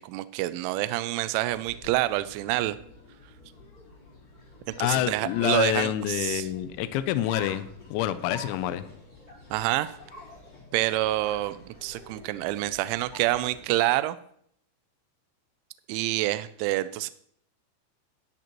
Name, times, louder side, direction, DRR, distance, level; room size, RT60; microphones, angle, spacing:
voice 1, 0.0-2.8 4.8-6.5 9.5-9.9 10.7-14.2 15.9-17.1, right 16 dB, 85° right, 14 dB, 2.9 m, -27 dB
sound 1, 1.4-13.7, left 3 dB, 25° left, 3.6 m, -47 dB
voice 2, 4.8-8.8, left 13 dB, 85° left, 13 dB, 2.7 m, -27 dB
12.0 x 12.0 x 3.0 m, 0.67 s
omnidirectional pair, 5.8 m